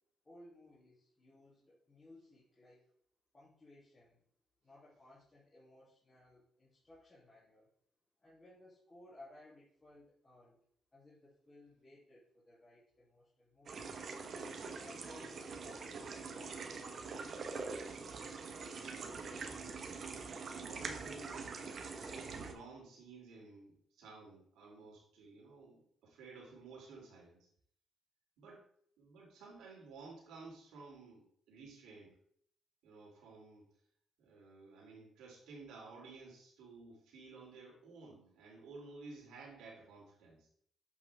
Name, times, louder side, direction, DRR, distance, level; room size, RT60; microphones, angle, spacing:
voice 1, 0.2-2.8 3.3-4.2 4.6-7.7 8.2-10.6 10.9-13.8 14.6-17.4, left 2 dB, 25° left, -9 dB, 3.0 m, -60 dB
sound 1, 13.7-22.5, right 4 dB, 55° right, 1.2 m, -44 dB
voice 2, 18.7-21.5 22.1-27.5 28.4-28.6 29.0-32.1 32.8-33.7 34.2-40.5, right 3 dB, 85° right, -3 dB, 3.3 m, -54 dB
8.3 x 5.7 x 3.6 m, 0.64 s
cardioid pair, 90°, 0 cm